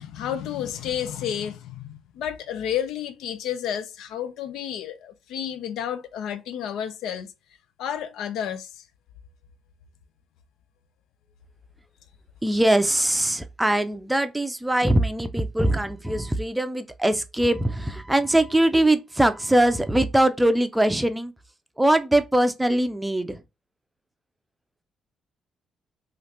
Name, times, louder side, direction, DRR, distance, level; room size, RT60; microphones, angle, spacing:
voice 1, 0.0-7.3 7.8-8.8, left 9 dB, 85° left, 0.4 m, -31 dB
voice 2, 12.4-21.3 21.8-23.4, right 1 dB, 10° right, 0.4 m, -22 dB
3.1 x 2.5 x 2.8 m
cardioid pair, 90°, 0 cm